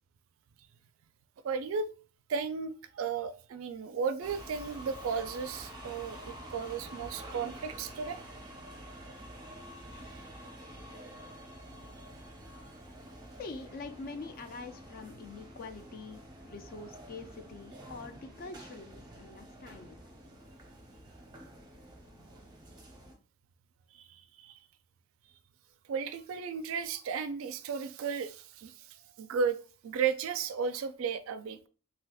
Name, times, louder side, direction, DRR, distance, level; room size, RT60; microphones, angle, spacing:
voice 1, 1.4-1.9 2.3-8.2 24.0-24.1 24.4-24.6 25.9-28.7 29.2-29.6 29.8-31.7, right 6 dB, 70° right, 0.3 m, -34 dB
sound 1, 4.2-23.2, right 1 dB, 20° right, 0.6 m, -48 dB
voice 2, 13.4-20.0, left 3 dB, 45° left, 0.4 m, -45 dB
3.3 x 2.8 x 2.3 m
head